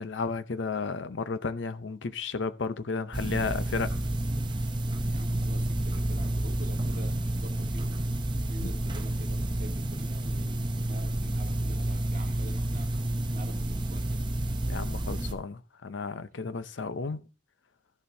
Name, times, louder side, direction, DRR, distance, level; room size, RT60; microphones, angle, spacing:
voice 1, 0.0-3.9 8.6-8.7 14.7-17.2, left 4 dB, 90° left, 0.6 m, -33 dB
sound 1, 3.1-15.3, right 1 dB, 25° right, 0.7 m, -30 dB
voice 2, 5.1-8.0 8.5-12.9 13.3-14.2, right 1 dB, 45° right, 1.7 m, -47 dB
13.5 x 6.9 x 2.7 m
head